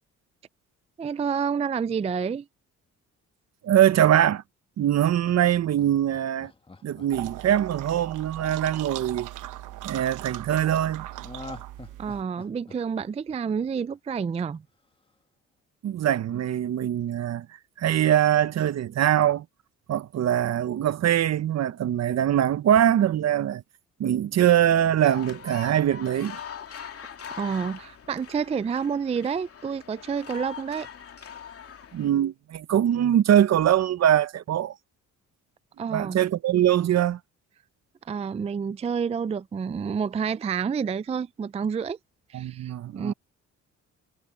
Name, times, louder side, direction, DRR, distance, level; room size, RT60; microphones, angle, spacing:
voice 1, 1.0-2.5 12.0-14.6 27.4-30.9 35.8-36.2 38.0-42.0 42.3-43.1, right 6 dB, 20° right, 0.4 m, -29 dB
voice 2, 3.6-4.4 4.8-6.5 6.8-9.3 9.8-11.1 15.8-17.5 17.8-19.4 19.9-23.6 24.0-26.4 31.9-34.7 35.9-37.2 42.3-43.1, right 11 dB, 60° right, 1.0 m, -22 dB
Laughter, 5.4-9.6 11.2-14.2 14.5-14.6, left 3 dB, 15° left, 1.6 m, -46 dB
sound 1, 7.1-12.2, right 14 dB, 85° right, 1.1 m, -39 dB
sound 2, 25.0-32.1, left 7 dB, 50° left, 2.7 m, -42 dB
cardioid pair, 90°, 30 cm